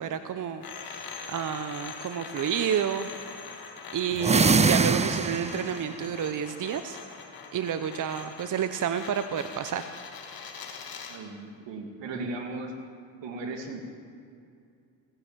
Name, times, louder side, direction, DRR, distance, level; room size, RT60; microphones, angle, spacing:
voice 1, 0.0-3.1 3.9-7.0 7.5-9.9, right 8 dB, 45° right, 10 dB, 0.8 m, -30 dB
sound 1, 0.6-11.3, left 5 dB, 50° left, 2.2 m, -42 dB
sound 2, 4.1-5.8, right 4 dB, 15° right, 0.5 m, -23 dB
voice 2, 11.1-12.7 13.2-13.8, right 3 dB, 70° right, 3 dB, 2.6 m, -36 dB
18.0 x 10.0 x 7.4 m, 2.4 s
supercardioid pair, 75°, 45 cm